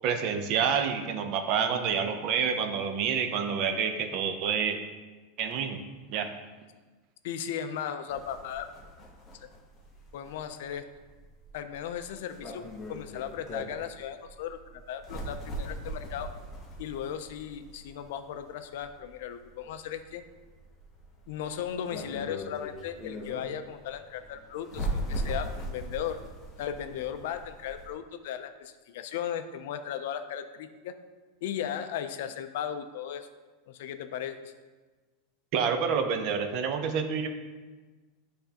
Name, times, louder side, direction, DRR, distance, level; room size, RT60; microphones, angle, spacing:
voice 1, 0.0-4.8 5.4-5.8 6.1-6.3 35.5-37.3, right 6 dB, 35° right, 6 dB, 0.5 m, -28 dB
voice 2, 7.2-8.7 9.3-9.5 10.1-10.9 11.5-16.3 16.8-20.2 21.3-26.2 26.6-30.9 31.4-33.3 33.7-34.5, left 9 dB, 60° left, 9 dB, 0.4 m, -36 dB
sound 1, 8.1-27.9, equal, 15° left, 0.7 m, -40 dB
10.0 x 3.4 x 2.8 m, 1.3 s
supercardioid pair, 175°, 0 cm